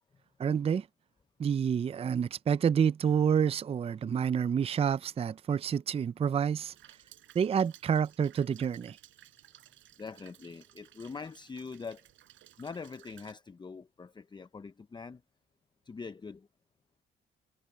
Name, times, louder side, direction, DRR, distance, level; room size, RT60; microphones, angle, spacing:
voice 1, 0.4-0.9 1.4-6.7 7.3-9.0, right 7 dB, 30° right, 0.4 m, -28 dB
Rain, 6.7-13.3, right 12 dB, 75° right, 4.8 m, -58 dB
voice 2, 10.0-12.1 12.6-15.2 15.8-16.5, left 4 dB, 20° left, 0.6 m, -43 dB
cardioid pair, 90°, 20 cm